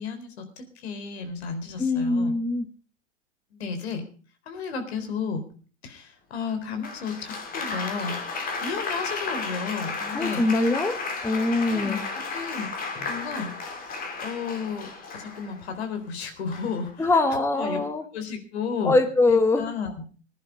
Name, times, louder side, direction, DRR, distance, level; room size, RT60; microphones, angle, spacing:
voice 1, 0.0-2.4 3.5-4.0 4.5-5.4 5.8-10.4 11.7-17.1 17.5-17.8 18.1-19.0 19.3-20.0, left 5 dB, 60° left, 7 dB, 4.1 m, -33 dB
voice 2, 1.8-2.7 10.1-11.0 11.2-12.0 17.0-18.0 18.8-19.7, left 2 dB, 5° left, 8 dB, 1.2 m, -22 dB
Applause, 6.8-15.7 16.5-16.9, left 4 dB, 25° left, 2.9 m, -33 dB
20.5 x 10.5 x 5.3 m, 0.40 s
figure-of-eight pair, 105°, 36 cm